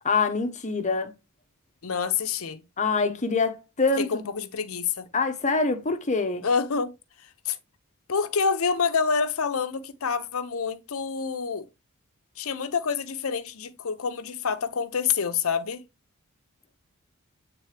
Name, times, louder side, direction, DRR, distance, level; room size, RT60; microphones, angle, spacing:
voice 1, 0.0-1.1 2.8-4.2 5.1-6.5, left 4 dB, 35° left, 0.8 m, -25 dB
voice 2, 1.8-2.6 4.0-5.1 6.4-6.9 7.5-7.6 8.1-11.6 12.4-15.8, left 6 dB, 65° left, 0.7 m, -27 dB
7.9 x 3.8 x 3.3 m
head